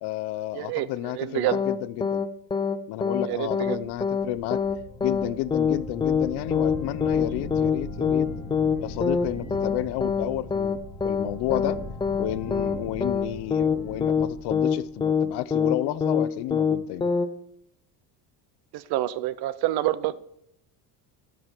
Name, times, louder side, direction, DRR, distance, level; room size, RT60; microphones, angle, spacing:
voice 1, 0.0-2.2 2.9-4.6 5.0-8.3 8.8-11.8 12.2-17.1, left 15 dB, 65° left, 15 dB, 0.6 m, -31 dB
voice 2, 0.5-1.6 3.2-3.8 18.7-20.2, right 14 dB, 60° right, 16 dB, 0.7 m, -28 dB
sound 1, 1.5-1.8 2.0-2.3 2.5-2.8 3.0-3.3 3.5-3.8 4.0-4.3 4.5-4.8 5.0-5.3 5.5-5.8 6.0-6.3 6.5-6.8 7.0-7.3 7.5-8.3 8.5-8.8 9.0-9.3 9.5-9.8 10.0-10.3 10.5-10.8 11.0-11.3 11.5-11.8 12.0-12.3 12.5-12.8 13.0-13.3 13.5-13.8 14.0-14.3 14.5-14.8 15.0-15.3 15.5-15.8 16.0-16.3 16.5-16.8 17.0-17.3, left 6 dB, 10° left, 0.4 m, -24 dB
sound 2, 4.0-15.6, left 2 dB, 10° right, 5.2 m, -39 dB
13.0 x 6.2 x 5.1 m, 0.75 s
cardioid pair, 140°, 44 cm